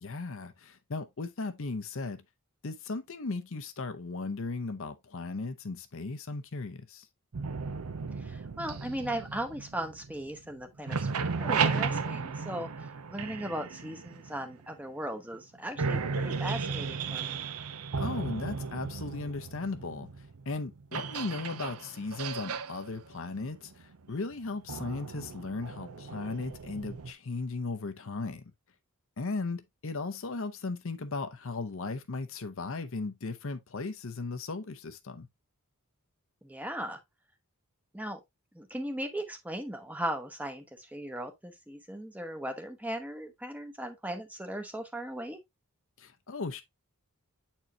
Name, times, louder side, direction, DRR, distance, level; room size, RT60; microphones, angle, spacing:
voice 1, 0.0-2.2 2.6-7.1 18.0-28.4 29.2-35.3 46.0-46.6, left 3 dB, 60° left, 0.7 m, -37 dB
sound 1, 7.3-10.5 10.8-14.7 15.3-15.4 15.8-27.1, right 5 dB, 80° right, 0.6 m, -35 dB
voice 2, 8.2-11.0 11.3-17.4 36.4-37.0 37.9-38.2 38.5-45.4, right 1 dB, 5° right, 0.9 m, -38 dB
8.0 x 4.5 x 2.7 m
head